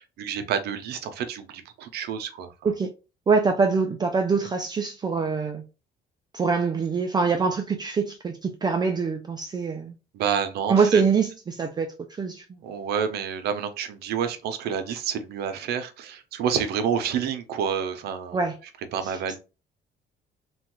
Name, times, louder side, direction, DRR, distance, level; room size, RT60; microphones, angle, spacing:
voice 1, 0.0-2.5 10.1-11.0 12.6-18.4 18.9-19.4, right 7 dB, 70° right, 0.6 m, -29 dB
voice 2, 3.3-5.6 6.3-9.9 10.7-12.4 18.3-18.6 19.0-19.4, right 5 dB, 25° right, 0.4 m, -24 dB
3.0 x 2.2 x 3.0 m
cardioid pair, 110°, 17 cm